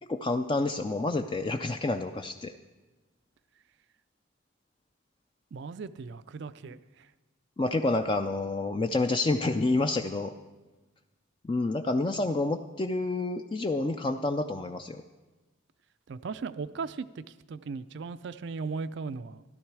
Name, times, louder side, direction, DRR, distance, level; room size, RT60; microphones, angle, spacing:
voice 1, 0.0-2.5 7.6-10.3 11.4-15.0, left 2 dB, 25° left, 7 dB, 0.3 m, -28 dB
voice 2, 5.5-7.1 16.1-19.4, right 4 dB, 55° right, 13 dB, 0.4 m, -37 dB
13.5 x 12.0 x 4.7 m, 1.1 s
head